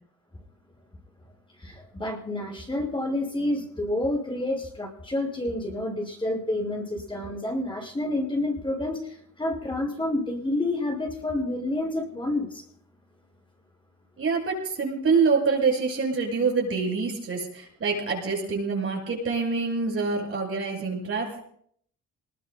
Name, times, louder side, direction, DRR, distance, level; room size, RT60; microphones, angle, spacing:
voice 1, 1.6-12.6, left 1 dB, 15° left, -1 dB, 5.9 m, -29 dB
voice 2, 14.2-21.4, right 4 dB, 45° right, -2 dB, 6.8 m, -26 dB
27.5 x 21.0 x 2.2 m, 0.64 s
cardioid pair, 90°, 30 cm